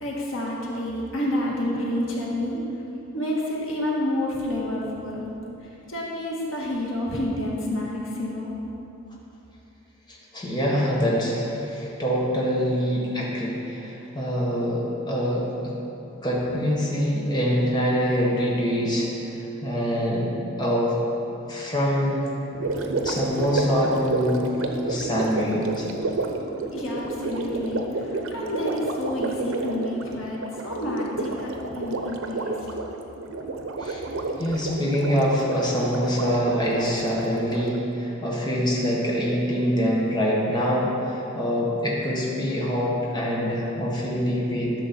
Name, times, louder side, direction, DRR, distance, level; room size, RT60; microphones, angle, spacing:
voice 1, 0.0-2.6 3.1-5.3 5.9-8.6 26.7-32.5, left 1 dB, 85° left, -4 dB, 1.7 m, -29 dB
voice 2, 10.1-15.7 16.2-19.3 19.6-20.3 20.6-21.0 21.5-22.3 23.0-24.5 24.8-25.9 33.8-34.0 34.4-44.7, equal, 20° left, -5 dB, 1.4 m, -25 dB
Gurgling, 22.5-37.8, right 3 dB, 85° right, 0.8 m, -30 dB
11.5 x 6.7 x 4.3 m, 2.9 s
head